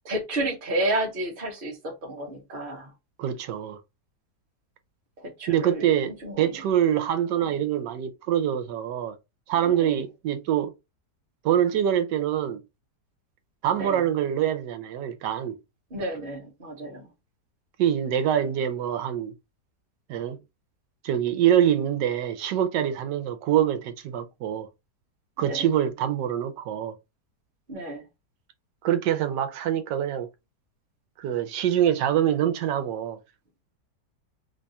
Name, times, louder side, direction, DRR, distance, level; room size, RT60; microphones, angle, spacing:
voice 1, 0.0-2.9 5.2-5.9 6.2-6.6 7.4-7.6 9.7-10.0 13.7-14.0 15.9-17.1 25.4-25.7 27.7-28.1, right 1 dB, 35° right, 1.1 m, -31 dB
voice 2, 3.2-3.8 5.5-9.2 9.5-10.7 11.4-12.6 13.6-15.6 17.8-19.3 20.1-20.4 21.0-24.7 25.4-26.9 28.8-30.3 31.2-33.2, right 10 dB, 90° right, 1.3 m, -25 dB
3.2 x 2.3 x 4.0 m
omnidirectional pair, 1.8 m